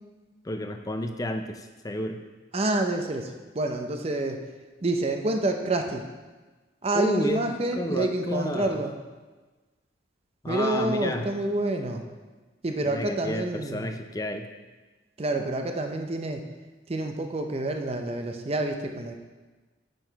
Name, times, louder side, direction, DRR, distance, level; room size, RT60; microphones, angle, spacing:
voice 1, 0.4-2.2 6.9-8.8 10.4-11.3 12.8-14.5, left 1 dB, 20° left, 6 dB, 0.5 m, -31 dB
voice 2, 2.5-4.4 4.8-6.0 6.8-8.9 10.5-12.0 12.6-13.8 15.2-16.4 16.9-19.2, right 2 dB, 30° right, 5 dB, 0.6 m, -28 dB
7.7 x 6.4 x 4.6 m, 1.3 s
head